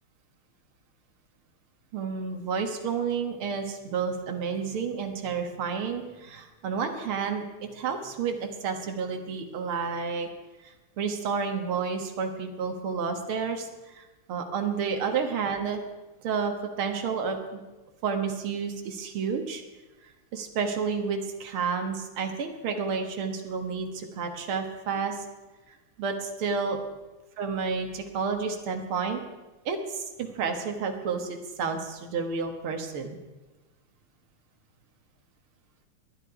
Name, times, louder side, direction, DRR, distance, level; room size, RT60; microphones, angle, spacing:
voice 1, 1.9-7.4 7.7-10.3 10.6-15.8 16.2-17.6 18.0-19.6 20.3-25.2 26.0-26.8 27.4-29.2 29.7-33.2, right 5 dB, 75° right, 4 dB, 2.3 m, -30 dB
19.0 x 11.0 x 4.9 m, 1.1 s
omnidirectional pair, 2.4 m